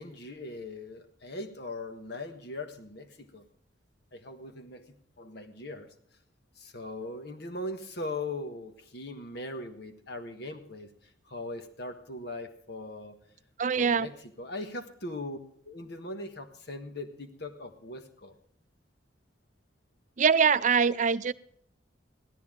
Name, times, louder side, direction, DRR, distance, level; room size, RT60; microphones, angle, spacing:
voice 1, 0.0-3.5 4.1-5.9 6.6-13.2 13.8-15.4 15.6-18.4, left 2 dB, 55° left, 7 dB, 1.5 m, -40 dB
voice 2, 13.6-14.1 20.2-21.3, right 6 dB, 40° right, 15 dB, 0.5 m, -23 dB
16.5 x 13.0 x 3.8 m, 0.67 s
head